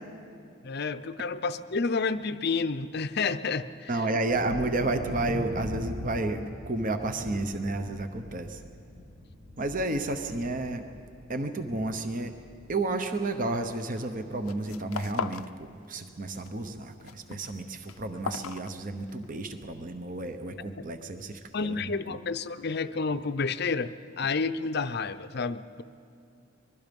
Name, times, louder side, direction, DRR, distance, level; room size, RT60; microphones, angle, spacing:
voice 1, 0.6-3.9 21.5-25.8, left 4 dB, 50° left, 11 dB, 0.6 m, -30 dB
voice 2, 3.9-8.6 9.6-10.8 11.3-12.3 12.7-22.2, right 2 dB, 40° right, 7 dB, 1.0 m, -31 dB
Thunder, 4.3-13.7 14.0-14.7 15.1-15.2 15.6-15.8, equal, 70° right, 4.3 m, -42 dB
sound 1, 13.8-14.1 14.4-15.5 15.8-16.5 16.8-19.3, left 5 dB, 90° left, 0.6 m, -38 dB
24.0 x 21.5 x 5.4 m, 2.7 s
head